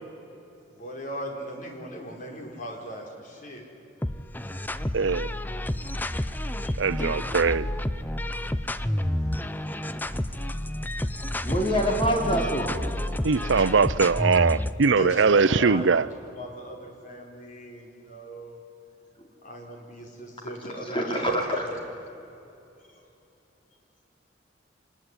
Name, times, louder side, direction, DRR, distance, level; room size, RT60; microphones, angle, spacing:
voice 1, 0.7-3.6 6.0-6.7 8.3-8.5 10.5-10.6 13.2-13.3 15.0-15.8 16.4-18.6 19.4-21.7, equal, 45° left, 4.8 m, -39 dB
sound 1, 4.0-14.8, left 1 dB, 10° left, 0.7 m, -30 dB
voice 2, 4.9-5.3 6.8-7.7 13.2-16.1, right 5 dB, 85° right, 0.6 m, -21 dB
voice 3, 11.4-12.8 20.8-21.6, equal, 30° left, 4.1 m, -25 dB
25.5 x 20.5 x 9.9 m
head